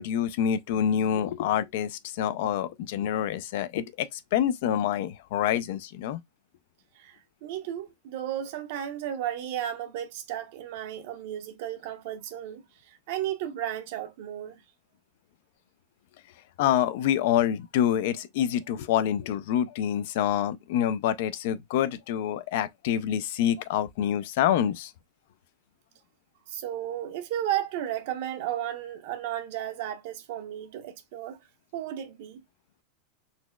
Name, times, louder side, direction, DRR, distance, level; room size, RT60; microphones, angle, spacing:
voice 1, 0.0-6.2 16.6-24.9, left 10 dB, 65° left, 0.4 m, -27 dB
voice 2, 7.0-14.6 26.5-31.4 31.7-32.4, right 11 dB, 60° right, 0.8 m, -34 dB
4.0 x 3.0 x 2.2 m
supercardioid pair, 160°, 0 cm